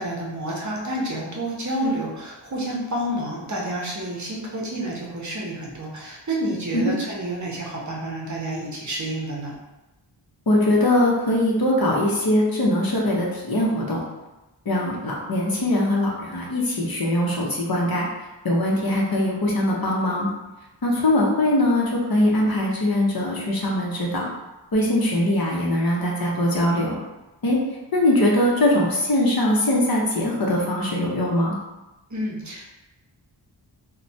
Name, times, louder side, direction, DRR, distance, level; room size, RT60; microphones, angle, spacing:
voice 1, 0.0-9.6 32.1-32.7, right 1 dB, 40° right, -3 dB, 0.7 m, -29 dB
voice 2, 10.5-14.0 14.7-18.1 18.4-20.3 20.8-24.3 24.7-27.0 27.4-27.6 27.9-31.6, left 1 dB, 50° left, -3 dB, 0.7 m, -21 dB
3.1 x 2.2 x 2.7 m, 1.0 s
wide cardioid pair, 95°, 45 cm